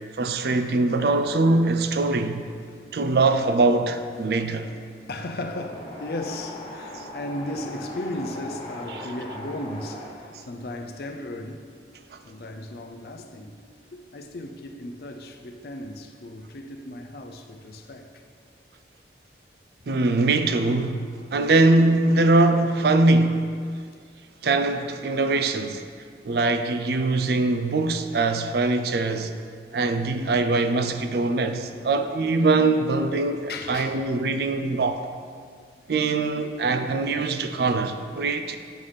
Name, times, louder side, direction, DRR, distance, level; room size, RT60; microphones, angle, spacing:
voice 1, 0.2-2.4 2.9-4.7 19.9-23.5 24.4-25.8 26.2-29.3 29.7-35.1 35.9-38.6, right 3 dB, 60° right, 0.4 m, -22 dB
voice 2, 2.6-3.0 4.2-18.3 33.5-34.0 35.8-35.9, left 1 dB, 60° left, 0.5 m, -36 dB
Wind, 5.5-10.1, left 1 dB, 35° left, 1.1 m, -38 dB
8.3 x 3.3 x 5.6 m
head